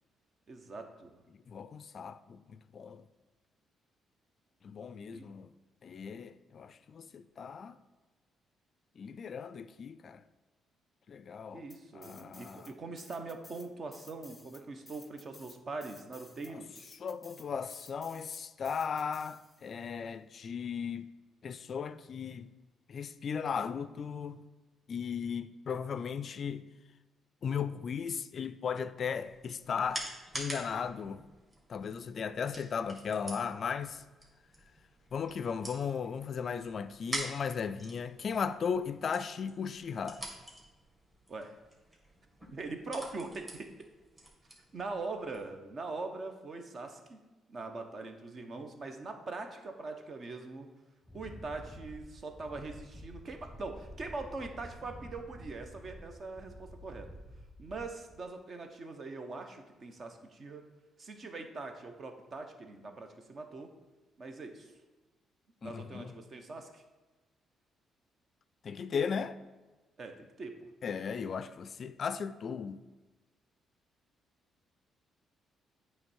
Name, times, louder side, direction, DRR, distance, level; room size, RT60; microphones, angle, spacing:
voice 1, 0.5-1.2 5.1-5.3 11.5-16.9 41.3-41.6 42.5-43.7 44.7-47.2 47.5-50.7 51.1-57.1 57.6-60.6 61.0-63.7 64.2-64.7 65.6-66.8 70.0-70.5, right 3 dB, 45° right, 1.0 m, -42 dB
voice 2, 1.5-3.0 4.6-5.5 5.8-7.8 9.0-10.2 11.1-11.6 11.9-12.7 16.5-16.6 17.0-21.1 21.4-22.5 22.9-24.4 24.9-26.7 27.4-30.1 30.3-31.2 31.7-34.0 35.1-40.2 65.6-66.1 68.6-69.4 70.8-72.8, left 6 dB, 50° left, 0.3 m, -36 dB
sound 1, 11.7-12.7 13.0-19.8, left 2 dB, 15° left, 0.7 m, -56 dB
sound 2, 29.1-45.5, right 1 dB, 20° right, 2.2 m, -47 dB
Wind, 51.0-58.2, equal, 5° right, 1.3 m, -50 dB
8.6 x 3.3 x 6.3 m
cardioid pair, 90°, 0 cm